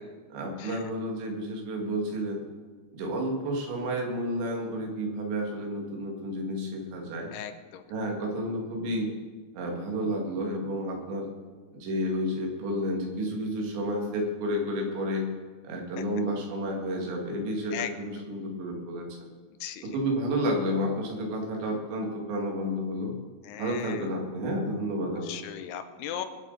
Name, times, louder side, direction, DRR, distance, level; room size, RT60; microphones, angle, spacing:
voice 1, 0.3-2.4 2.9-7.3 7.9-9.1 9.5-11.3 11.7-15.3 15.6-19.1 19.8-23.1 23.6-25.6, equal, 90° right, 0 dB, 4.4 m, -31 dB
voice 2, 7.3-7.8 17.7-17.9 19.6-19.8 23.5-24.0 25.3-26.3, left 10 dB, 80° left, 9 dB, 2.7 m, -37 dB
24.0 x 8.1 x 4.0 m, 1.4 s
omnidirectional pair, 4.9 m